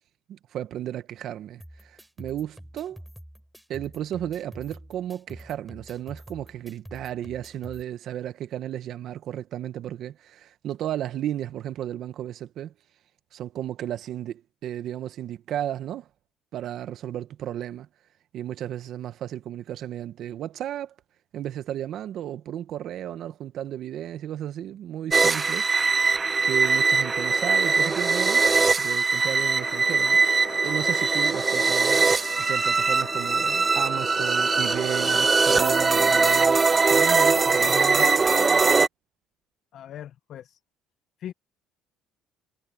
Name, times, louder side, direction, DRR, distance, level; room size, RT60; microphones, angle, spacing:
voice 1, 0.3-3.0 3.7-12.7 13.3-16.1 16.5-17.9 18.3-20.9 21.3-26.1 26.4-28.5 28.8-36.6 36.9-38.1, right 11 dB, 65° right, 1.2 m, -34 dB
sound 1, 1.6-7.8, equal, 5° right, 6.2 m, -46 dB
sound 2, 25.1-38.9, right 4 dB, 25° right, 0.3 m, -21 dB
sound 3, 29.6-37.4, left 18 dB, 85° left, 4.1 m, -43 dB
voice 2, 39.7-40.6 41.2-41.3, left 10 dB, 60° left, 0.8 m, -39 dB
supercardioid pair, 85°, 0 cm